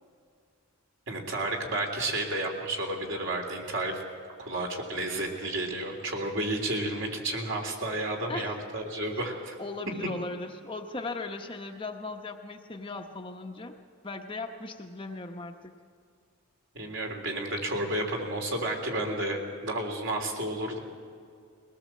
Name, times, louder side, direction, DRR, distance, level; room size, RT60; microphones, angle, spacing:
voice 1, 1.1-4.0 4.4-9.6 16.7-20.8, right 1 dB, 55° right, 1 dB, 3.6 m, -31 dB
voice 2, 9.6-13.8 14.0-15.7, left 3 dB, 25° left, 3 dB, 0.9 m, -38 dB
21.5 x 18.5 x 7.5 m, 2.2 s
head